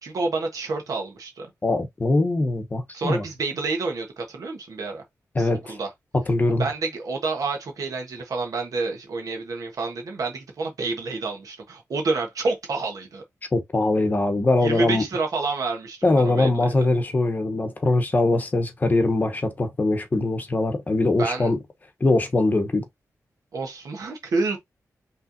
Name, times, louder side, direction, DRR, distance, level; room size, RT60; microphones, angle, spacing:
voice 1, 0.0-1.5 2.9-5.0 5.4-5.9 6.6-13.2 14.6-16.9 21.2-21.5 23.5-24.6, right 3 dB, 70° right, 1.2 m, -29 dB
voice 2, 1.6-3.2 5.3-5.8 6.3-6.7 13.5-15.0 16.0-21.6 22.0-22.8, left 2 dB, 30° left, 1.0 m, -22 dB
5.5 x 3.3 x 2.7 m
wide cardioid pair, 175°, 6 cm